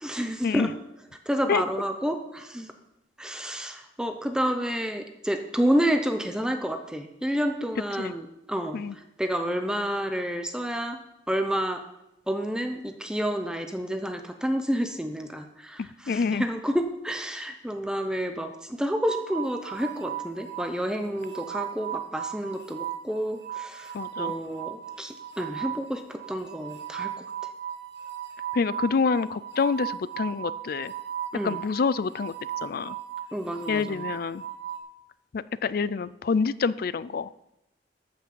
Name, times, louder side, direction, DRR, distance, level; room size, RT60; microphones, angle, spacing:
voice 1, 0.0-0.7 1.3-2.7 3.2-8.8 9.2-11.0 11.3-11.8 12.3-23.9 24.2-27.1 31.3-31.6 33.3-34.0, equal, 5° right, 6 dB, 0.7 m, -29 dB
voice 2, 16.1-16.5 23.9-24.3 28.5-30.9 31.4-32.3 32.6-33.0 33.7-34.4 35.3-37.3, left 5 dB, 55° left, 18 dB, 0.4 m, -27 dB
sound 1, 19.1-34.8, right 10 dB, 75° right, 2.0 m, -37 dB
13.0 x 6.0 x 7.0 m, 0.88 s
head